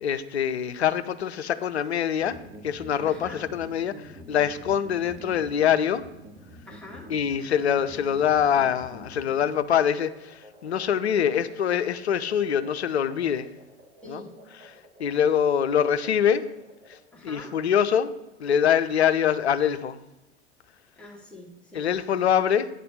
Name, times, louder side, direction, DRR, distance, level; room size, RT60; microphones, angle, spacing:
voice 1, 0.0-2.4 2.6-6.0 7.1-13.5 14.1-14.2 15.0-16.4 17.2-18.1 18.4-20.0 21.7-22.7, left 8 dB, 75° left, 0.6 m, -24 dB
sound 1, 2.2-17.0, right 1 dB, 25° right, 1.9 m, -47 dB
voice 2, 3.1-3.4 6.7-7.1 14.0-14.3 17.1-17.5 21.0-21.9, left 2 dB, 5° left, 2.1 m, -44 dB
9.1 x 4.2 x 6.5 m
figure-of-eight pair, 85°, 33 cm